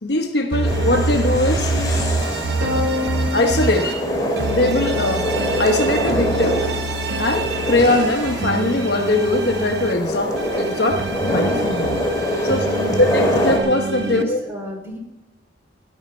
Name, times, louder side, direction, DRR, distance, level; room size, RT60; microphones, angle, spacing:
voice 1, 0.0-1.8 2.2-2.4 3.3-3.9 4.5-5.3 5.6-6.6 7.2-12.0 12.4-12.7 12.9-14.4, left 2 dB, 55° left, 5 dB, 1.1 m, -21 dB
sound 1, 0.5-3.9 4.4-9.9 10.4-14.2, right 3 dB, 55° right, 1.0 m, -26 dB
sound 2, 0.6-13.6, equal, 20° left, 2.5 m, -25 dB
sound 3, 2.6-5.2, left 3 dB, 75° right, 2.8 m, -28 dB
voice 2, 12.7-13.1 13.9-15.0, left 1 dB, 15° right, 0 dB, 3.4 m, -32 dB
17.5 x 11.0 x 4.4 m, 0.97 s
head